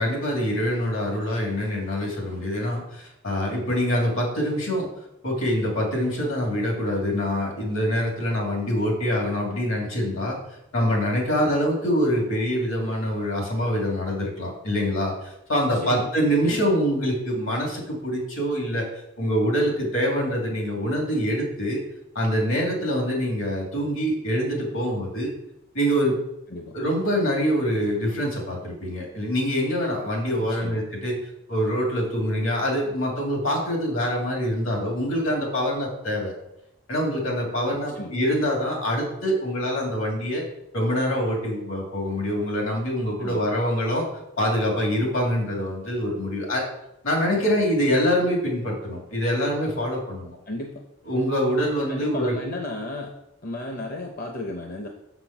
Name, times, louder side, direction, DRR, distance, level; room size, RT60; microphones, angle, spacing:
voice 1, 0.0-4.9 5.2-10.4 10.7-18.8 19.2-21.8 22.1-25.3 25.7-26.1 26.7-31.1 31.5-36.3 36.9-40.4 40.7-44.0 44.4-46.6 47.0-50.4 51.1-52.3, equal, 70° left, 0 dB, 2.8 m, -25 dB
voice 2, 30.4-30.8 37.9-38.1 43.2-43.6 50.5-50.8 51.9-53.1 53.4-54.9, left 1 dB, 40° left, 3 dB, 0.8 m, -34 dB
6.7 x 5.9 x 6.0 m, 0.85 s
head